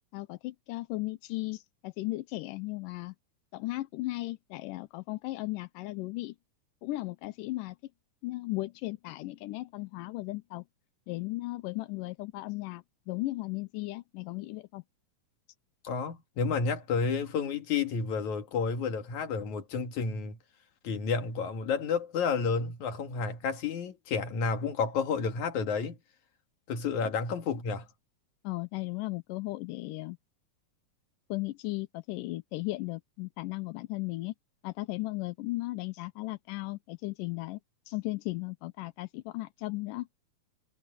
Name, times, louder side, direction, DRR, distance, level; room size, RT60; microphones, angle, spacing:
voice 1, 0.1-3.1 3.5-6.4 6.8-7.8 8.2-10.6 11.1-14.8 28.4-30.2 31.3-34.3 34.6-37.6 37.9-40.1, left 20 dB, 85° left, 2.3 m, -36 dB
voice 2, 15.8-20.4 20.8-26.0 26.7-27.9, left 5 dB, 60° left, 3.4 m, -31 dB
omnidirectional pair, 3.8 m